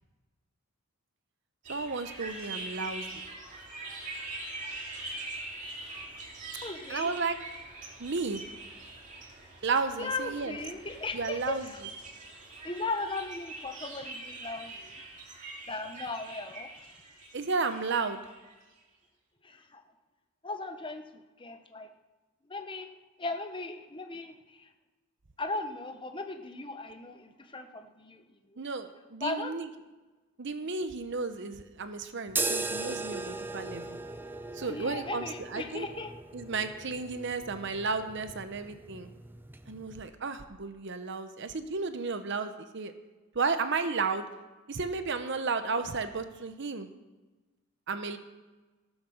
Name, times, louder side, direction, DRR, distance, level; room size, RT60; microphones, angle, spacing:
sound 1, 1.7-18.6, right 2 dB, 35° right, 2.5 m, -43 dB
voice 1, 1.7-3.1 6.9-7.4 8.0-8.4 9.6-10.5 11.1-11.7 17.3-18.2 28.6-29.7 30.4-34.0 34.5-35.9 36.3-39.1 39.7-42.9 43.3-44.2 44.7-46.9 47.9-48.2, right 4 dB, 55° right, 9 dB, 0.8 m, -33 dB
voice 2, 6.6-7.1 10.0-11.8 12.6-15.0 15.7-16.9 19.4-19.8 20.4-21.9 22.5-22.9 23.2-24.7 25.4-28.7 29.2-29.6 34.7-36.1, left 3 dB, 20° left, 6 dB, 0.9 m, -37 dB
sound 2, 32.3-40.1, right 3 dB, 10° right, 0.5 m, -38 dB
15.0 x 7.3 x 6.4 m, 1.2 s
head